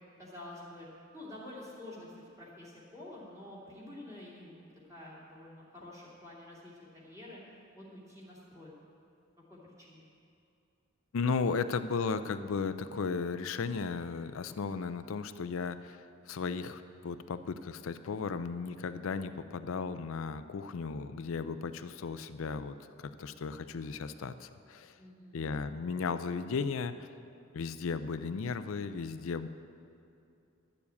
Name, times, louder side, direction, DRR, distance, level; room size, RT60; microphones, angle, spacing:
voice 1, 0.2-0.9 1.1-2.1 2.4-7.4 7.7-8.7 9.5-10.1 25.0-25.7, left 1 dB, 15° right, -7 dB, 2.6 m, -49 dB
voice 2, 11.1-24.9 25.3-27.1 27.5-29.5, left 5 dB, 75° left, 11 dB, 0.4 m, -35 dB
12.0 x 7.1 x 8.4 m, 2.6 s
head